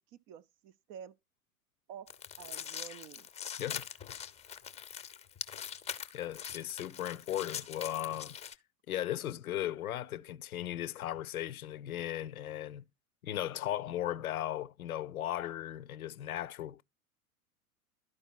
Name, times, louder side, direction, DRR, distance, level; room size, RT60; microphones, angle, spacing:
voice 1, 0.3-1.2 1.9-3.3, right 8 dB, 30° right, 0.5 m, -49 dB
sound 1, 2.1-8.5, left 8 dB, 15° left, 0.7 m, -43 dB
voice 2, 6.1-8.4 8.9-12.8 13.2-16.8, left 12 dB, 70° left, 0.7 m, -37 dB
12.5 x 4.9 x 4.4 m
figure-of-eight pair, 90°, 44 cm